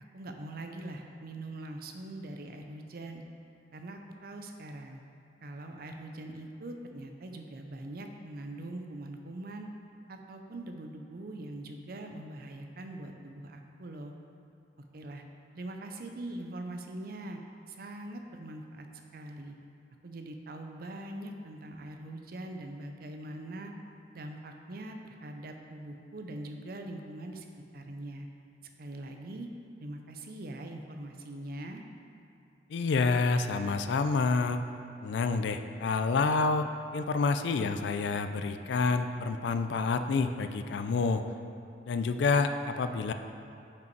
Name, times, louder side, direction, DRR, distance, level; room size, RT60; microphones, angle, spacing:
voice 1, 0.1-3.2 3.7-5.0 5.4-9.7 10.1-14.1 14.9-15.2 15.5-17.4 17.7-18.9 19.1-19.5 20.0-23.7 24.1-27.5 27.7-28.3 28.8-29.5 29.8-31.8, right 1 dB, 55° right, 4 dB, 0.5 m, -42 dB
voice 2, 32.7-34.6 35.0-41.2 41.9-43.1, left 4 dB, 80° left, 8 dB, 0.4 m, -28 dB
5.6 x 5.1 x 4.6 m, 2.7 s
head